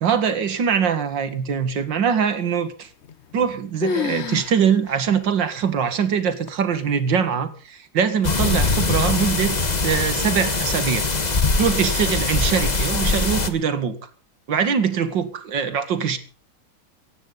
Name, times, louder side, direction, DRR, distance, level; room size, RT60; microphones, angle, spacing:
voice 1, 0.0-2.9 3.3-9.6 9.8-11.1 11.6-14.0 14.5-16.2, right 7 dB, 65° right, 2.5 m, -22 dB
sound 1, 3.0-3.5 3.8-4.5 4.9-5.0 5.6-5.7 6.5-6.9, left 6 dB, 50° left, 0.8 m, -28 dB
sound 2, 8.2-13.5, left 3 dB, 25° left, 1.3 m, -22 dB
18.0 x 15.5 x 4.0 m
omnidirectional pair, 2.2 m